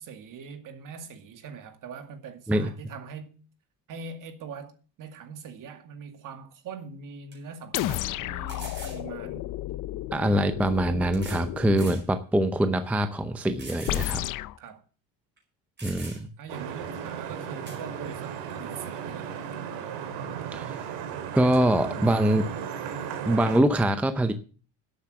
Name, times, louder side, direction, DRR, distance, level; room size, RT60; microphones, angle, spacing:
voice 1, 0.0-3.4 3.9-9.5 10.2-10.5 14.6-14.8 16.4-19.4, right 5 dB, 45° right, 2.2 m, -42 dB
sound 1, 6.7-6.8 7.3-7.4 8.5-9.0 10.2-10.3 11.1-11.5 11.8-12.1 12.6-12.7 13.6-14.0 14.4-14.5 15.4-15.5 15.8-16.4 17.7-17.8, right 3 dB, 25° right, 5.1 m, -43 dB
sound 2, 7.7-12.0 13.9-14.6, left 15 dB, 45° left, 0.6 m, -32 dB
voice 2, 10.1-14.2 15.8-16.3 20.5-20.9 21.3-22.5 23.3-24.3, right 1 dB, 5° right, 0.6 m, -24 dB
Vehicle horn car horn honking / Traffic noise roadway noise, 16.5-23.6, right 8 dB, 85° right, 2.8 m, -35 dB
12.0 x 8.5 x 7.8 m
cardioid pair, 155°, 43 cm